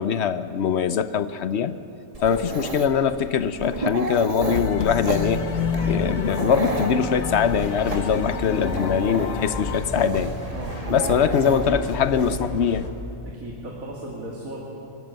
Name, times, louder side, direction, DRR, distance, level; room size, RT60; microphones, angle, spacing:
voice 1, 0.0-1.7 2.2-5.5 5.9-10.3 10.9-12.9, left 7 dB, 60° left, 12 dB, 0.9 m, -22 dB
Dog, 2.1-12.4, right 2 dB, 25° right, 1.5 m, -33 dB
sound 1, 4.4-9.8, left 6 dB, 80° left, 1.4 m, -30 dB
sound 2, 5.0-12.9, left 1 dB, 30° left, 1.5 m, -33 dB
voice 2, 10.5-11.2 13.2-14.6, right 1 dB, 85° right, -4 dB, 2.8 m, -36 dB
22.5 x 13.0 x 8.9 m, 2.7 s
omnidirectional pair, 1.4 m